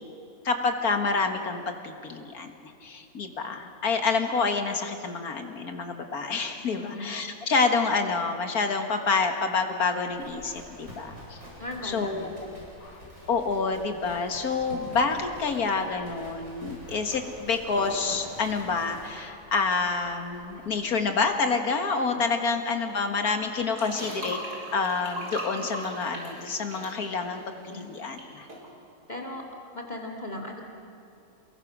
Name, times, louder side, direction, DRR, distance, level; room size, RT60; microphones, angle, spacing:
voice 1, 0.4-11.4 11.8-12.5 12.8-13.0 13.3-24.4 24.7-28.5, left 4 dB, 70° left, 5 dB, 2.2 m, -28 dB
voice 2, 6.7-7.0 11.6-12.3 22.1-22.2 27.7-27.9 29.1-29.4 29.7-30.6, left 1 dB, 25° left, 2 dB, 2.4 m, -37 dB
Livestock farm animals working animals, 10.1-20.9, equal, 45° right, 7.7 m, -46 dB
sound 1, 23.8-28.2 28.5-28.7, equal, 85° right, 5.1 m, -38 dB
28.5 x 21.5 x 6.2 m, 2.8 s
omnidirectional pair, 1.6 m